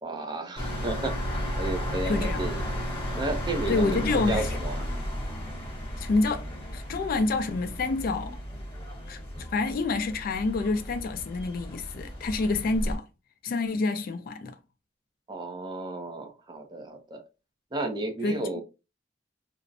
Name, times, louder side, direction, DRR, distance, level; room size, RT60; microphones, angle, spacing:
voice 1, 0.0-1.2 1.6-2.7 3.1-4.8 15.3-17.2 17.7-18.6, right 2 dB, 25° right, 0.5 m, -33 dB
sound 1, 0.6-13.0, equal, 30° left, 0.9 m, -34 dB
voice 2, 2.1-2.5 3.7-4.5 6.0-6.4 6.7-8.4 9.1-9.2 9.5-13.0 13.4-14.6 18.2-18.4, left 3 dB, 50° left, 0.3 m, -27 dB
2.5 x 2.0 x 2.5 m
head